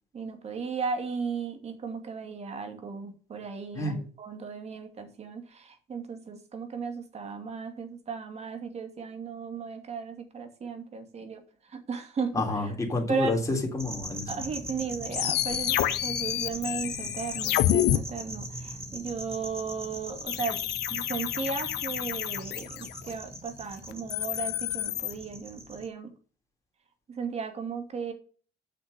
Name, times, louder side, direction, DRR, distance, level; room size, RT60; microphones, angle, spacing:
voice 1, 0.1-11.4 11.7-12.3 13.1-13.4 14.3-20.6 20.9-26.1 27.1-28.1, right 5 dB, 40° right, 6 dB, 2.6 m, -35 dB
voice 2, 12.3-14.3, left 2 dB, 20° left, 0 dB, 3.6 m, -29 dB
sound 1, 13.8-25.9, right 1 dB, 15° right, 1.8 m, -41 dB
sound 2, 15.1-18.0 20.3-23.1 23.9-25.1, left 13 dB, 75° left, 0.9 m, -29 dB
8.3 x 6.5 x 6.7 m, 0.41 s
cardioid pair, 110°, 17 cm